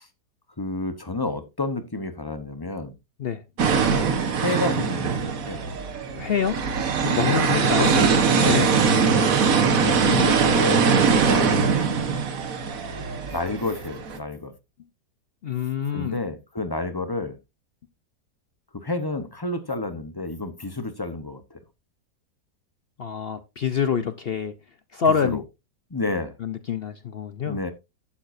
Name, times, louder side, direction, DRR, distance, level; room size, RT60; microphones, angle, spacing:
voice 1, 0.6-2.9 3.8-4.1 4.4-5.6 7.3-7.4 7.8-8.6 9.8-10.9 11.3-11.6 11.8-12.1 13.3-14.5 15.9-17.4 18.7-21.6 25.2-25.4 25.9-26.3 27.5-27.7, left 2 dB, 20° left, 0.6 m, -30 dB
sound 1, 3.6-14.2, right 5 dB, 55° right, 1.6 m, -21 dB
voice 2, 6.1-6.6 7.0-7.9 8.5-8.7 15.4-16.2 23.0-24.5 24.9-25.4 26.4-27.7, left 7 dB, 65° left, 0.6 m, -26 dB
11.5 x 9.0 x 2.6 m
omnidirectional pair, 1.8 m